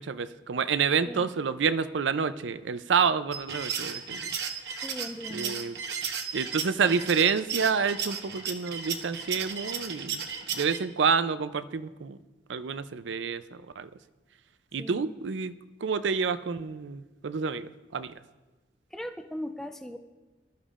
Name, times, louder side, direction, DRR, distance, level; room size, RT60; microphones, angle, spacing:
voice 1, 0.0-4.3 5.3-5.8 6.3-10.2 10.5-12.2 12.5-13.4 13.8-13.9 14.7-15.5 15.8-18.1, right 6 dB, 80° right, 13 dB, 0.5 m, -28 dB
sound 1, 3.3-10.8, right 6 dB, 60° right, 1.0 m, -34 dB
voice 2, 4.8-5.5 14.8-15.2 18.9-20.0, equal, 5° left, 6 dB, 0.4 m, -38 dB
19.5 x 13.0 x 2.5 m, 1.2 s
head